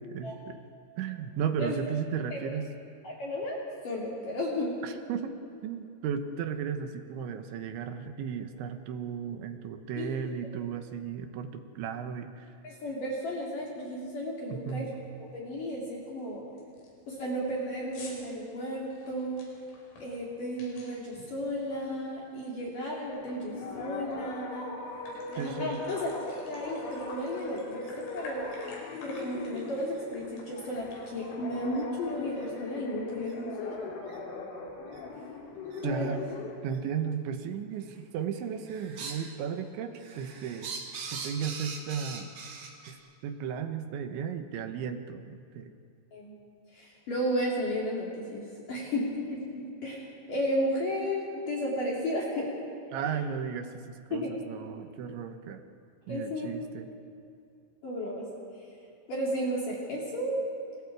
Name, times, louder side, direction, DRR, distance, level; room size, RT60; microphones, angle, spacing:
voice 1, 0.1-0.6 1.0-2.7 4.8-5.3 5.6-12.5 14.5-14.9 25.4-25.8 35.8-36.2 36.6-40.7 41.1-42.3 42.9-43.0 43.2-45.7 52.9-55.6 56.1-56.9, right 7 dB, 75° right, 7 dB, 3.2 m, -35 dB
voice 2, 3.0-3.6 3.8-4.8 10.0-10.2 12.6-14.9 15.3-16.5 17.1-19.5 20.0-24.7 25.3-26.2 26.5-28.5 29.0-33.9 35.8-36.1 46.1-46.4 46.7-52.5 54.1-54.3 56.1-56.5 57.8-58.3 59.1-60.4, equal, 45° left, -4 dB, 4.0 m, -33 dB
sound 1, 13.2-13.3 13.7-14.0 14.3-14.4 14.8-15.2 15.6-15.7 16.2-16.3 16.6-22.5 22.9-24.2 24.5-24.6 24.9-31.3, left 2 dB, 90° left, 8.1 m, -51 dB
sound 2, 23.1-36.6, left 3 dB, 65° left, 4.7 m, -40 dB
sound 3, 26.8-27.0 27.8-27.9 28.5-28.6 29.1-29.2 29.9-30.0 31.0-31.1 31.7-31.8 32.4-32.5 33.2-33.3 34.1-34.2 34.9-35.0 35.7-35.8 36.7-36.8 37.7-38.1 38.4-39.3 39.7-42.9, right 5 dB, 55° right, 3.6 m, -42 dB
29.0 x 29.0 x 4.8 m, 2.6 s
omnidirectional pair, 5.9 m